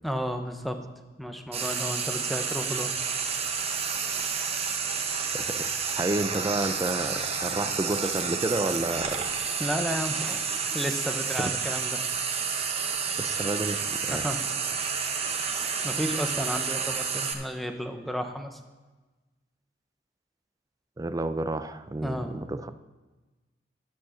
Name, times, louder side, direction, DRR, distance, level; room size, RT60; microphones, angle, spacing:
voice 1, 0.0-0.8 1.2-3.0 9.5-10.4 10.7-12.0 14.1-14.4 15.4-18.6 22.0-22.4, equal, ahead, 6 dB, 0.8 m, -32 dB
Frying (food), 1.5-17.3, right 6 dB, 35° right, 0.9 m, -30 dB
sound 1, 1.9-15.3, left 3 dB, 75° left, 1.0 m, -49 dB
voice 2, 5.3-5.7 5.9-9.2 10.5-10.8 11.4-11.6 13.2-14.4 21.0-22.7, right 2 dB, 20° right, 11 dB, 0.4 m, -31 dB
11.0 x 6.3 x 6.4 m, 1.2 s
head